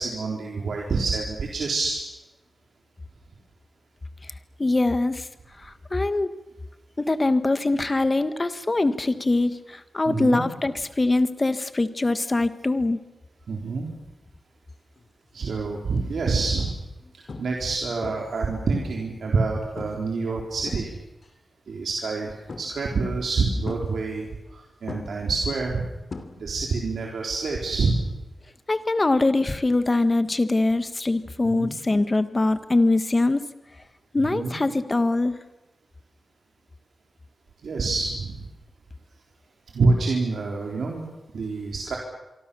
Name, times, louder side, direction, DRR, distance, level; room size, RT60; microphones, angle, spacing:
voice 1, 0.0-2.0 10.1-10.5 13.5-13.9 15.3-16.8 17.4-20.9 21.7-25.8 26.4-28.1 31.5-31.7 34.2-34.5 37.6-38.4 39.7-41.1 41.3-42.0, right 3 dB, 85° right, -1 dB, 4.0 m, -27 dB
voice 2, 4.6-5.3 5.6-6.3 7.0-13.0 28.7-33.4 34.1-35.3, left 2 dB, 30° left, 11 dB, 1.6 m, -23 dB
sound 1, 15.0-15.3 15.9-16.0 16.6-17.0 17.3-17.7 18.0-19.2 19.8-20.1 20.4-21.3 22.5-23.0 23.7-24.5 24.9-26.8 27.0-27.4 29.5-29.6, left 3 dB, 50° left, 2.8 m, -40 dB
27.0 x 24.0 x 7.1 m, 1.0 s
wide cardioid pair, 95°, 0 cm